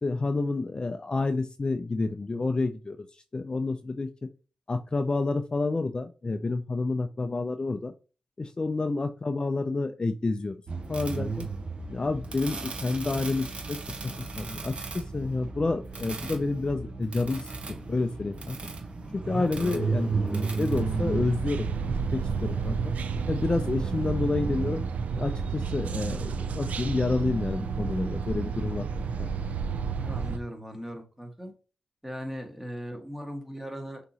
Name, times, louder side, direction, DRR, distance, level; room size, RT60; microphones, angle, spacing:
voice 1, 0.0-4.3 4.7-7.9 8.4-10.6 10.9-11.5 11.9-18.6 19.1-21.7 22.1-22.9 23.3-24.8 25.2-29.3, left 3 dB, 35° left, 0.4 m, -29 dB
sound 1, 10.7-21.3, right 3 dB, 50° right, 1.0 m, -34 dB
sound 2, 20.7-30.4, right 5 dB, 70° right, 0.4 m, -31 dB
voice 2, 29.9-31.5 32.0-34.1, equal, 10° right, 1.5 m, -38 dB
6.0 x 2.9 x 2.8 m
supercardioid pair, 45°, 3 cm